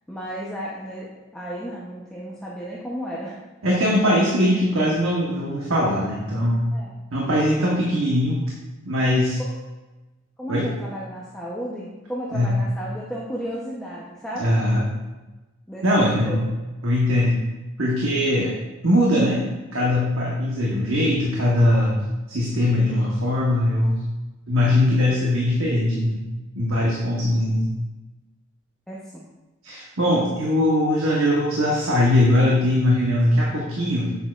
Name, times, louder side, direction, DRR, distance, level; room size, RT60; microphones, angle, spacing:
voice 1, 0.1-3.4 6.7-6.9 9.4-9.6 10.4-14.5 15.7-16.4 25.0-25.2 28.9-29.3, equal, 5° left, -6 dB, 0.8 m, -33 dB
voice 2, 3.6-6.7 7.1-8.4 8.8-9.4 10.5-10.7 12.3-12.5 14.4-14.8 15.8-16.4 16.8-17.3 17.8-18.5 18.8-19.4 19.7-24.0 24.5-26.2 26.5-27.7 29.6-34.2, left 1 dB, 75° right, -4 dB, 1.2 m, -21 dB
8.3 x 7.1 x 2.5 m, 1.1 s
head